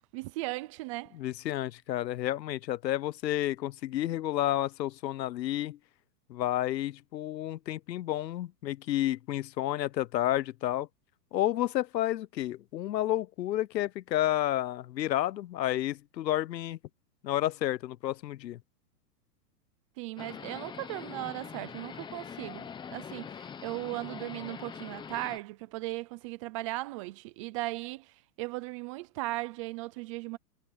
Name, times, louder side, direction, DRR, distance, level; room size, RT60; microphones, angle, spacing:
voice 1, 0.1-1.2 20.0-30.4, right 20 dB, 20° right, 0.5 m, -37 dB
voice 2, 1.1-5.8 6.3-10.9 11.3-16.8 17.2-18.6, left 13 dB, 85° left, 0.9 m, -31 dB
sound 1, 20.2-25.4, left 7 dB, 10° left, 0.9 m, -43 dB
hypercardioid pair, 150°, 49 cm